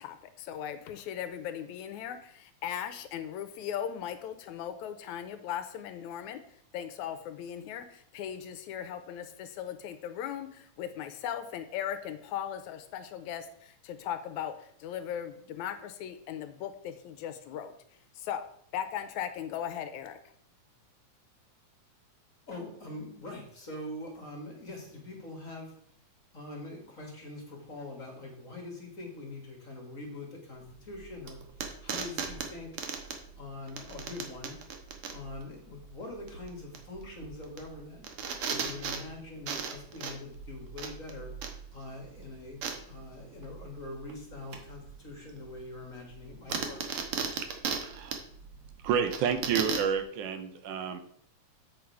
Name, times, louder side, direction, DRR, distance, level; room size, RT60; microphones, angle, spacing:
voice 1, 0.0-6.4 6.7-17.7 18.2-18.5 18.7-20.2, left 9 dB, 80° left, 9 dB, 2.0 m, -38 dB
voice 2, 22.5-26.0 26.3-31.4 31.8-32.7 33.4-34.6 35.1-38.1 38.5-41.3 41.7-46.8, left 2 dB, 30° left, 0 dB, 1.8 m, -43 dB
sound 1, 30.6-50.0, right 6 dB, 60° right, 1.7 m, -38 dB
voice 3, 47.8-48.1 48.8-51.0, right 7 dB, 85° right, 7 dB, 2.4 m, -30 dB
8.5 x 6.4 x 4.7 m, 0.67 s
omnidirectional pair, 3.5 m